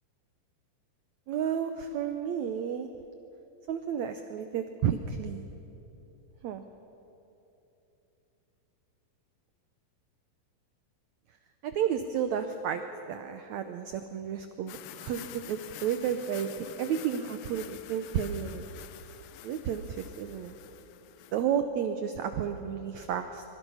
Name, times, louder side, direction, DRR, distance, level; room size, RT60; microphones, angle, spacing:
voice 1, 1.3-2.9 3.7-5.4 6.4-6.6 11.6-12.8 13.1-18.7 19.4-20.5 21.3-23.4, right 8 dB, 80° right, 8 dB, 1.6 m, -32 dB
sound 1, 14.7-21.4, left 12 dB, 80° left, 2.5 m, -47 dB
25.0 x 23.0 x 5.6 m, 2.9 s
omnidirectional pair, 4.3 m